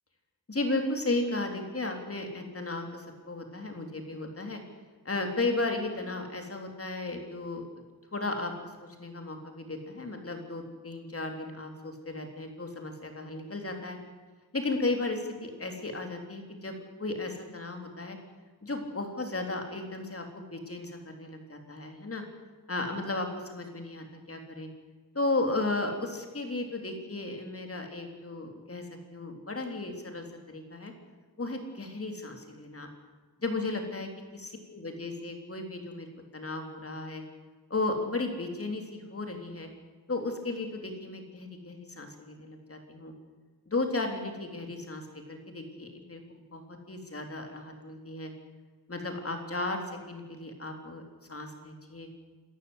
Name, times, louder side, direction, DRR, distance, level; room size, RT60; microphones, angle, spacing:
voice 1, 0.5-4.6 5.1-7.7 8.1-14.0 14.5-18.2 18.6-22.2 22.7-24.7 25.1-30.9 31.4-32.9 33.4-37.2 37.7-39.7 40.1-43.1 43.7-48.3 48.9-51.0 51.3-52.1, left 2 dB, 35° left, 3 dB, 3.8 m, -35 dB
28.0 x 14.0 x 8.2 m, 1.4 s
wide cardioid pair, 125°, 38 cm